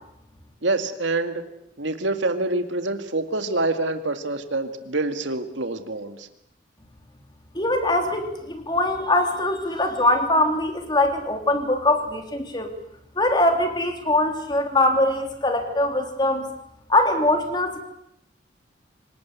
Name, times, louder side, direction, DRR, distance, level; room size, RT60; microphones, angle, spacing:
voice 1, 0.6-1.4 1.8-6.3, right 2 dB, 75° right, 7 dB, 2.1 m, -26 dB
voice 2, 7.6-12.7 13.2-16.5 16.9-17.8, left 1 dB, 25° left, 5 dB, 3.3 m, -22 dB
26.0 x 18.5 x 8.4 m, 0.79 s
head